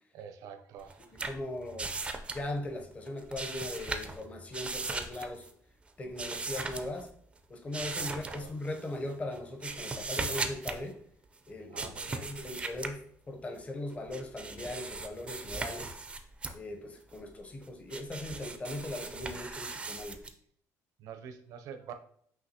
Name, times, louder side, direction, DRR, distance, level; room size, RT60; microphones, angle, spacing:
voice 1, 0.1-1.3 7.8-8.5 11.7-12.3 21.0-21.9, right 7 dB, 75° right, 0.6 m, -47 dB
sound 1, 0.8-2.8 3.1-4.2 4.5-5.5 6.2-7.1 7.7-8.8 9.3-10.8 11.8-12.9 13.9-16.5 17.1-20.3, right 3 dB, 20° right, 0.4 m, -38 dB
voice 2, 1.1-1.9 2.3-5.5 6.0-7.1 7.5-11.0 11.5-16.0 16.5-20.2, left 1 dB, 20° left, 0.7 m, -39 dB
5.7 x 2.8 x 2.8 m
cardioid pair, 135°, 6 cm